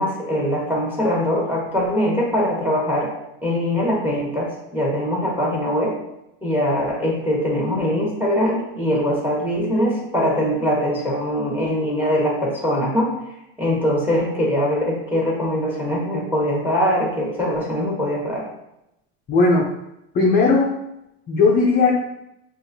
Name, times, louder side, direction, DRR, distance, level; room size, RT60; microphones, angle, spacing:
voice 1, 0.0-3.1 3.4-6.0 6.4-13.1 13.6-18.5, equal, 5° right, -3 dB, 1.4 m, -22 dB
voice 2, 19.3-19.7 20.1-20.7 21.3-22.1, left 3 dB, 25° left, -2 dB, 0.6 m, -17 dB
5.7 x 2.6 x 2.7 m, 0.84 s
supercardioid pair, 125°, 34 cm